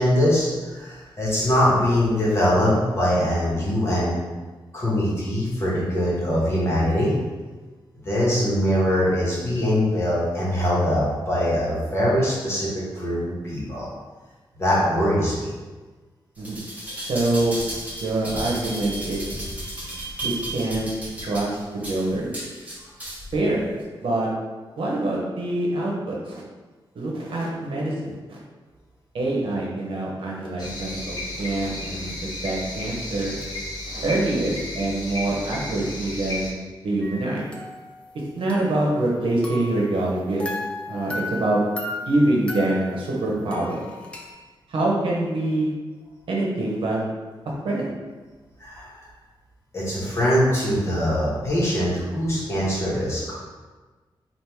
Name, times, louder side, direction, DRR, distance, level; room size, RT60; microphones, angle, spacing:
voice 1, 0.0-4.2 4.7-7.1 8.0-13.9 14.6-15.5 48.6-49.0 49.7-53.3, equal, 30° left, -6 dB, 1.3 m, -22 dB
sound 1, 16.4-23.4 23.8-23.9, right 1 dB, 15° right, 1.4 m, -34 dB
voice 2, 17.1-17.6 18.0-19.2 20.2-20.9 21.2-22.3 23.3-23.6 24.0-24.3 24.8-26.4 26.9-28.4 29.1-33.4 33.9-36.5 36.8-37.5 38.4-40.5 40.9-41.6 41.9-43.8 44.7-45.7 46.3-47.0 47.6-47.9, right 2 dB, 75° right, -3 dB, 0.9 m, -25 dB
sound 2, 30.6-36.5, left 1 dB, 50° left, 1.2 m, -33 dB
sound 3, 37.0-38.2 38.5-39.9 40.4-44.3, left 2 dB, 10° left, 0.6 m, -36 dB
3.5 x 2.5 x 4.5 m, 1.3 s
wide cardioid pair, 160°, 9 cm